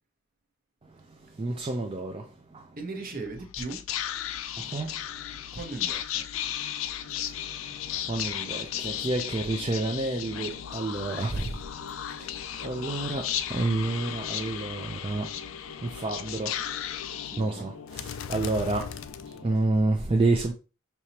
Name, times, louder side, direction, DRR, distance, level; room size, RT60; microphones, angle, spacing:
voice 1, 1.4-2.3 2.5-2.6 4.7-4.9 8.1-11.6 12.2-12.3 12.6-15.3 15.8-16.6 17.4-18.9 19.4-20.5, right 2 dB, 25° right, 0.4 m, -29 dB
voice 2, 2.8-3.8 5.5-6.2 17.3-17.7, right 3 dB, 45° right, 0.9 m, -38 dB
Whispering, 3.2-19.8, left 10 dB, 80° left, 0.4 m, -35 dB
4.6 x 2.9 x 2.8 m
head